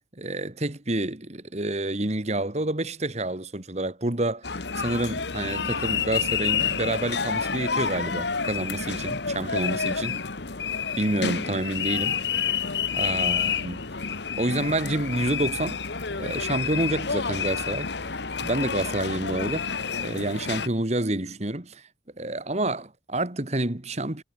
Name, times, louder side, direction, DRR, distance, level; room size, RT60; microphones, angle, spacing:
voice 1, 0.2-10.2 11.0-12.2 12.9-13.8 14.4-15.8 16.2-17.9 18.4-19.7 20.0-21.8 22.2-24.2, right 1 dB, 35° right, 1.7 m, -28 dB
sound 1, 4.4-20.7, left 6 dB, 65° left, 1.5 m, -29 dB
head